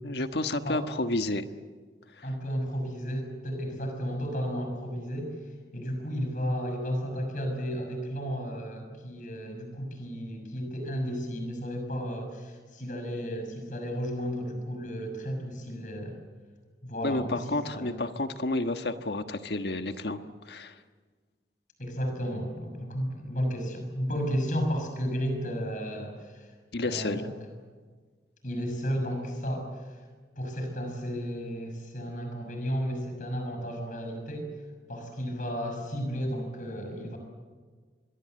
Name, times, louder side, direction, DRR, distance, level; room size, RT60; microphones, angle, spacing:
voice 1, 0.0-1.5 2.2-2.3 17.0-20.2 20.4-20.7 26.7-27.2, left 2 dB, 75° left, 8 dB, 1.4 m, -30 dB
voice 2, 2.2-5.4 5.7-16.2 16.8-17.9 21.8-26.5 26.8-27.3 28.4-30.0 30.4-34.5 34.9-37.2, equal, 45° left, 4 dB, 6.3 m, -33 dB
26.0 x 22.0 x 7.9 m, 1.5 s
head